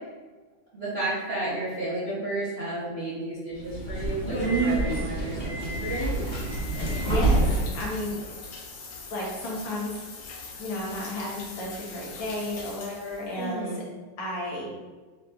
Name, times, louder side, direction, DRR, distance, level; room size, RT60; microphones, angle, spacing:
voice 1, 0.7-6.1 13.4-13.8, right 1 dB, 50° right, -10 dB, 0.7 m, -32 dB
Subway metro underground, 3.6-7.8, right 2 dB, 30° left, 0.9 m, -26 dB
sound 1, 5.6-13.5, left 4 dB, 70° left, 1.5 m, -42 dB
voice 2, 6.7-8.2 9.1-9.9 10.6-13.8 14.2-14.7, left 1 dB, 90° left, -4 dB, 2.0 m, -33 dB
7.3 x 2.5 x 2.3 m, 1.3 s
omnidirectional pair, 2.3 m